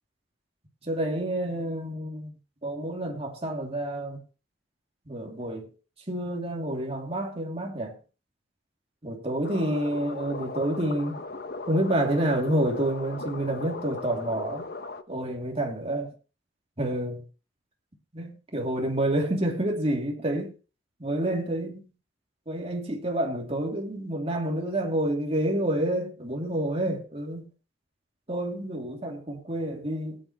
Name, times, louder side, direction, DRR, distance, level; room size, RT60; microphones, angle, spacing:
voice 1, 0.8-2.3 2.6-4.2 5.1-5.7 6.1-7.9 9.0-11.2 11.7-14.6 15.1-16.1 16.8-17.2 18.1-20.5 21.0-21.8 22.5-27.5 28.3-30.2, right 1 dB, 35° right, 2.6 m, -28 dB
sound 1, 9.4-15.0, left 3 dB, 55° left, 1.0 m, -38 dB
19.0 x 9.3 x 3.0 m
head